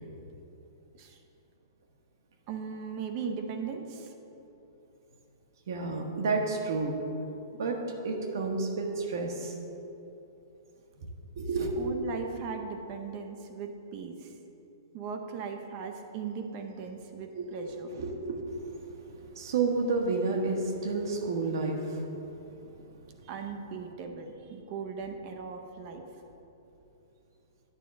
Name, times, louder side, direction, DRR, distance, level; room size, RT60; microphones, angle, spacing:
voice 1, 2.5-4.1 11.8-14.4 14.9-17.9 23.2-26.0, right 5 dB, 30° right, 4 dB, 0.6 m, -38 dB
voice 2, 5.7-7.0 7.6-9.6 11.4-11.9 17.3-17.4 17.9-22.1 22.6-22.7, right 3 dB, 65° right, 2 dB, 1.1 m, -31 dB
9.0 x 3.7 x 7.1 m, 3.0 s
hypercardioid pair, 165°, 2 cm